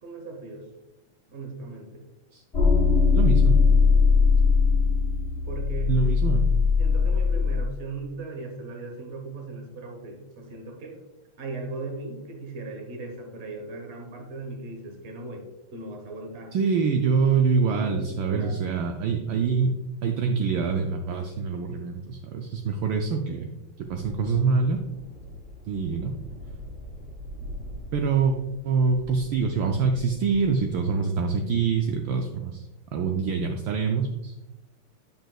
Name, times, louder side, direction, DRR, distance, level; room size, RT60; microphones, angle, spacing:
voice 1, 0.0-0.7 1.3-2.0 5.4-5.9 6.8-11.0 11.4-15.4 15.7-16.5 17.8-18.6, right 3 dB, 40° right, 3 dB, 1.1 m, -38 dB
sound 1, 2.5-7.6, left 5 dB, 30° left, 0.6 m, -20 dB
voice 2, 3.1-3.6 5.9-6.4 16.5-24.8 25.7-26.1 27.9-28.4 28.6-32.6 32.9-34.3, right 5 dB, 75° right, 4 dB, 1.2 m, -25 dB
sound 2, 23.8-30.7, left 1 dB, 5° right, 1.9 m, -42 dB
8.8 x 5.4 x 2.3 m, 0.96 s
omnidirectional pair, 2.4 m